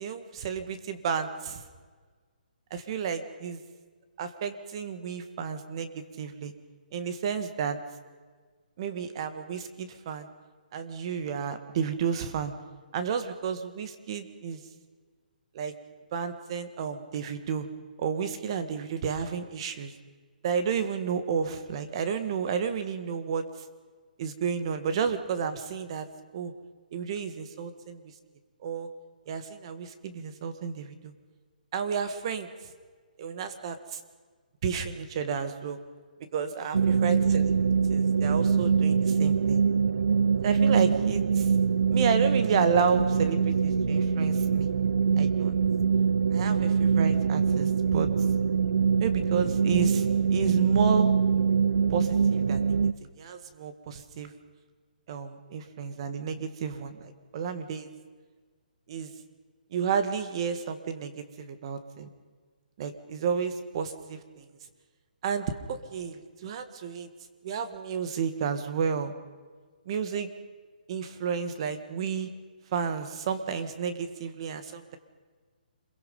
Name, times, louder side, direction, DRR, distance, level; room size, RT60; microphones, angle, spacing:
voice 1, 0.0-1.6 2.7-3.6 4.2-6.5 6.9-7.8 8.8-10.3 10.7-12.5 12.9-14.6 15.5-15.8 16.1-17.7 18.0-19.9 20.4-23.5 24.2-26.1 26.3-26.5 26.9-28.0 28.6-28.9 29.3-31.1 31.7-32.5 33.2-34.0 34.6-35.8 36.3-37.5 37.9-39.6 40.4-41.5 41.9-44.7 45.2-45.6 46.3-48.1 49.0-51.2 51.9-52.6 53.2-54.3 55.1-57.9 58.9-59.1 59.7-62.1 62.8-64.5 65.2-67.1 67.4-69.1 69.9-70.3 70.9-72.3 72.7-75.0, right 6 dB, 35° right, 9 dB, 1.8 m, -31 dB
sound 1, 36.7-52.9, right 6 dB, 70° right, 0.8 m, -24 dB
26.5 x 22.5 x 5.5 m, 1.5 s
hypercardioid pair, 160°, 5 cm